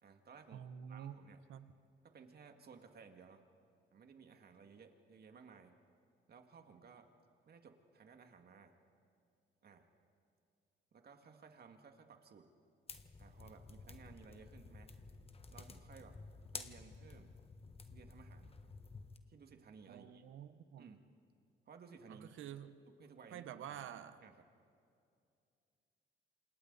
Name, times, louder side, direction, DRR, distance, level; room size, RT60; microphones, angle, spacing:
voice 1, 0.0-1.4 2.0-3.4 3.9-5.7 6.3-7.1 7.5-8.7 9.6-9.9 10.9-12.5 13.2-14.9 15.5-16.2 16.5-17.3 17.9-18.5 19.3-20.2 20.8-21.0 21.7-22.4 22.9-23.9 24.2-24.5, right 5 dB, 50° right, 5 dB, 2.2 m, -58 dB
voice 2, 0.5-1.2 1.5-1.7 19.9-20.9 22.1-22.7 23.3-24.2, right 9 dB, 80° right, 11 dB, 1.1 m, -49 dB
sound 1, 12.9-19.2, left 4 dB, 30° left, 1.4 m, -52 dB
28.0 x 27.0 x 4.1 m, 2.5 s
cardioid pair, 90°, 20 cm